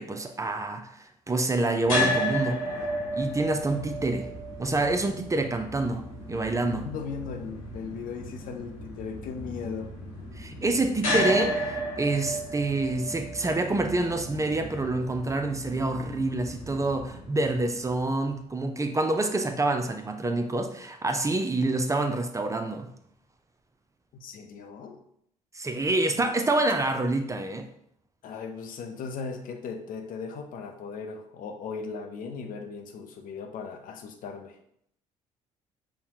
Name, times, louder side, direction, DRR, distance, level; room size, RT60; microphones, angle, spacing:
voice 1, 0.0-2.6 3.1-4.3 4.6-6.9 10.4-22.9 25.5-27.7, right 2 dB, 20° right, 6 dB, 0.5 m, -27 dB
sound 1, 1.8-18.0, equal, 90° left, 1.2 m, -33 dB
voice 2, 6.7-9.9 24.1-25.0 28.2-34.6, left 5 dB, 55° left, 5 dB, 0.6 m, -38 dB
5.5 x 2.2 x 2.8 m, 0.71 s
hypercardioid pair, 50°, 17 cm